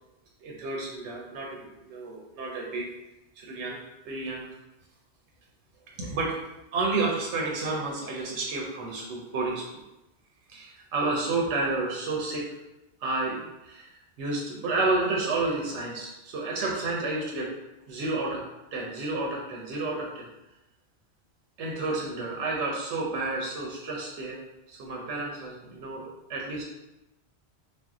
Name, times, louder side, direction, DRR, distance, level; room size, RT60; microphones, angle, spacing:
voice 1, 0.4-2.9 3.4-3.8 4.0-4.5 6.0-6.4 6.7-9.8 10.5-12.5 13.0-13.9 14.2-17.5 17.9-18.4 18.7-20.3 21.6-24.4 24.7-26.6, right 3 dB, 90° right, -2 dB, 0.9 m, -30 dB
2.6 x 2.0 x 3.5 m, 0.94 s
omnidirectional pair, 1.1 m